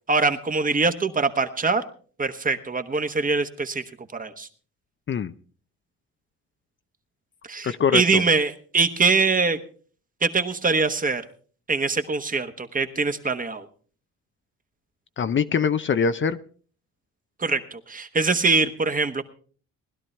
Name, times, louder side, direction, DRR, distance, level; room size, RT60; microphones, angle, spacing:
voice 1, 0.1-1.8 2.2-3.8 4.1-4.5 7.5-9.6 10.2-11.2 11.7-13.7 17.4-19.2, right 4 dB, 25° right, 8 dB, 1.2 m, -23 dB
voice 2, 7.6-8.2 15.2-16.4, left 6 dB, 40° left, 11 dB, 0.6 m, -23 dB
20.0 x 12.0 x 3.3 m, 0.42 s
cardioid pair, 90°, 30 cm